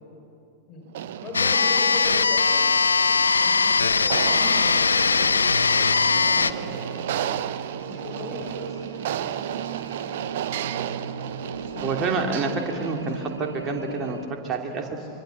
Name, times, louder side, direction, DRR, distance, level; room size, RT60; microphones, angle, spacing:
sound 1, 0.9-13.2, right 11 dB, 55° right, 0.7 m, -34 dB
voice 1, 1.2-2.5 3.4-5.4 6.1-9.0 9.2-9.9 10.3-11.1 11.7-12.4 12.8-13.3 14.4-15.1, left 3 dB, 30° left, 0 dB, 5.7 m, -39 dB
sound 2, 1.3-6.5, left 4 dB, 75° left, 0.6 m, -20 dB
sound 3, 5.5-14.3, right 3 dB, 80° right, 1.6 m, -37 dB
voice 2, 11.8-14.9, right 4 dB, 30° right, 3 dB, 2.8 m, -28 dB
25.5 x 23.5 x 7.2 m, 2.7 s
figure-of-eight pair, 90°, 0 cm